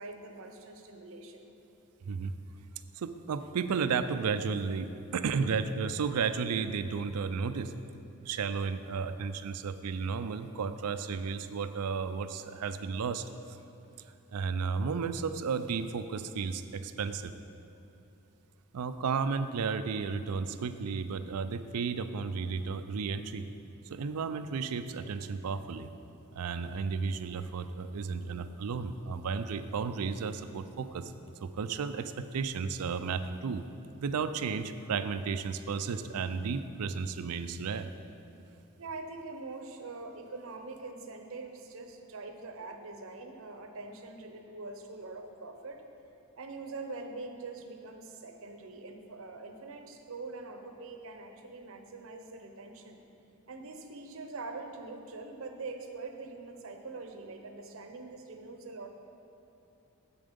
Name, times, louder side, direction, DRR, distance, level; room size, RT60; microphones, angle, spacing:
voice 1, 0.0-1.5 3.5-3.6 38.8-45.8 46.4-53.0 53.5-58.9, right 3 dB, 60° right, 5 dB, 0.7 m, -44 dB
voice 2, 2.9-7.7 8.2-13.3 14.3-17.3 18.7-23.5 23.9-25.9 26.3-31.1 31.4-33.6 34.0-37.9, right 5 dB, 90° right, 11 dB, 0.4 m, -33 dB
7.8 x 7.3 x 5.2 m, 2.9 s
head